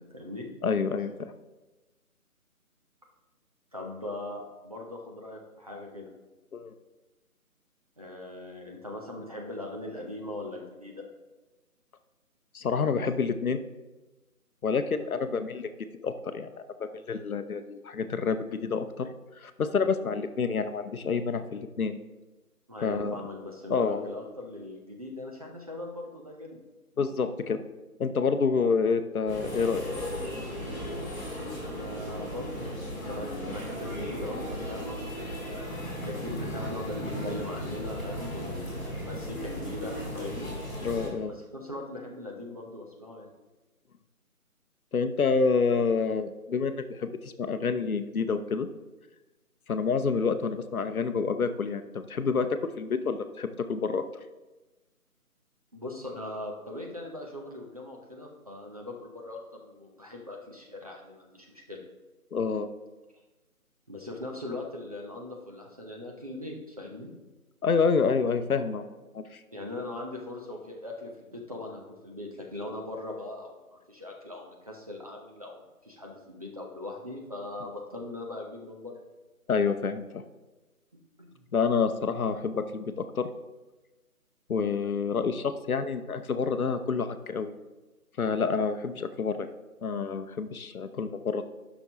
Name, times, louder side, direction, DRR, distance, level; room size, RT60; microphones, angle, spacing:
voice 1, 0.0-0.5 3.7-6.1 8.0-11.0 22.7-26.6 31.6-35.7 36.0-40.5 41.2-43.3 55.7-61.8 63.9-67.1 69.5-79.0 81.2-81.5, left 2 dB, 25° right, 0 dB, 0.7 m, -40 dB
voice 2, 0.6-1.3 6.5-6.7 12.5-13.6 14.6-15.7 16.0-19.1 19.4-22.0 22.8-23.2 23.7-24.1 27.0-27.6 28.0-29.8 40.8-41.3 44.9-48.7 49.7-54.1 62.3-62.7 67.6-68.8 69.1-69.4 79.5-80.2 81.5-83.3 84.5-87.5 88.2-89.5 89.8-91.4, left 5 dB, 70° left, 9 dB, 0.8 m, -28 dB
sound 1, 29.3-41.1, equal, 5° left, 1.0 m, -36 dB
11.0 x 6.1 x 2.9 m, 1.1 s
figure-of-eight pair, 155°, 45 cm